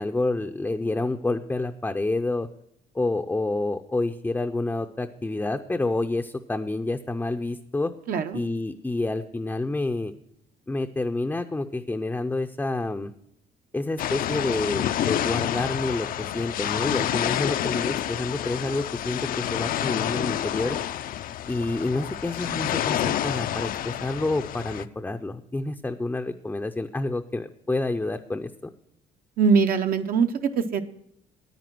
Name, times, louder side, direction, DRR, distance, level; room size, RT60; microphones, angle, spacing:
voice 1, 0.0-2.5 2.9-7.9 8.3-10.1 10.7-13.1 13.7-20.8 21.5-28.5, left 2 dB, 10° left, 5 dB, 0.5 m, -28 dB
voice 2, 8.1-8.4 29.4-30.8, right 5 dB, 60° right, 7 dB, 0.8 m, -22 dB
sound 1, 14.0-24.9, left 11 dB, 55° left, 0.5 m, -28 dB
9.5 x 9.3 x 6.0 m, 0.78 s
cardioid pair, 110°, 17 cm